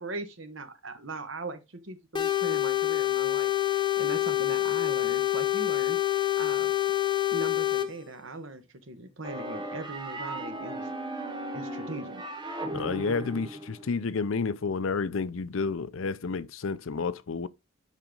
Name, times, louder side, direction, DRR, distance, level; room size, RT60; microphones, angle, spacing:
voice 1, 0.0-6.7 7.3-11.2 11.5-12.2, right 2 dB, 65° right, 1.3 m, -40 dB
sound 1, 2.1-7.9, left 14 dB, 20° left, 0.7 m, -26 dB
sound 2, 9.2-14.0, right 1 dB, 20° right, 1.3 m, -37 dB
voice 2, 12.7-17.5, left 4 dB, 70° left, 0.5 m, -30 dB
7.4 x 5.2 x 3.8 m
head